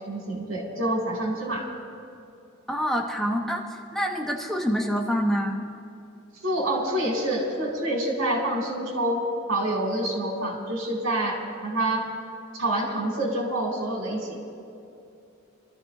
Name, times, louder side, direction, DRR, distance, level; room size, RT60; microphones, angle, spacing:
voice 1, 0.1-1.7 6.4-12.1 12.5-14.4, right 1 dB, 75° right, -1 dB, 3.9 m, -27 dB
voice 2, 2.7-5.6, equal, ahead, 0 dB, 1.0 m, -26 dB
25.0 x 14.0 x 3.0 m, 2.7 s
head